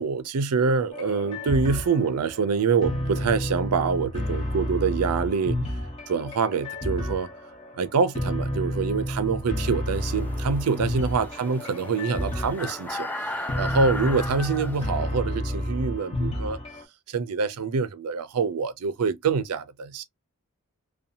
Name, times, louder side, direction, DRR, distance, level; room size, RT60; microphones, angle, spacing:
voice 1, 0.0-5.6 6.1-7.3 7.8-13.1 13.6-16.6 17.1-20.0, right 5 dB, 90° right, 0.5 m, -25 dB
sound 1, 0.9-16.8, left 1 dB, 25° left, 1.0 m, -31 dB
sound 2, 9.9-14.9, left 1 dB, 5° left, 0.4 m, -36 dB
2.7 x 2.3 x 2.5 m
head